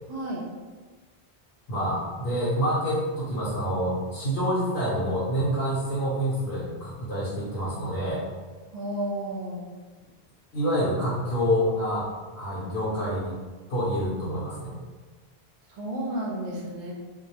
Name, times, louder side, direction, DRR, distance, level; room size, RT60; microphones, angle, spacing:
voice 1, 0.1-0.4 8.7-9.7 15.7-16.9, right 1 dB, 50° right, -3 dB, 0.6 m, -32 dB
voice 2, 1.7-8.2 10.5-12.1 12.4-13.3 13.7-14.7, equal, 70° left, -9 dB, 0.9 m, -27 dB
2.3 x 2.1 x 2.8 m, 1.4 s
omnidirectional pair, 1.1 m